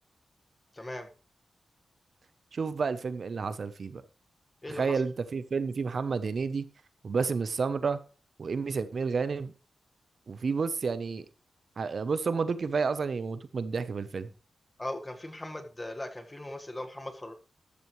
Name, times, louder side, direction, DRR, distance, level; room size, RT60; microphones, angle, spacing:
voice 1, 0.7-1.1 4.6-5.0 14.8-17.3, left 1 dB, 15° left, 1.7 m, -39 dB
voice 2, 2.5-4.0 4.8-6.7 7.0-8.0 8.4-9.5 10.3-11.3 11.8-14.3, right 5 dB, 55° right, 0.8 m, -30 dB
14.0 x 11.5 x 3.2 m
wide cardioid pair, 130°, 0 cm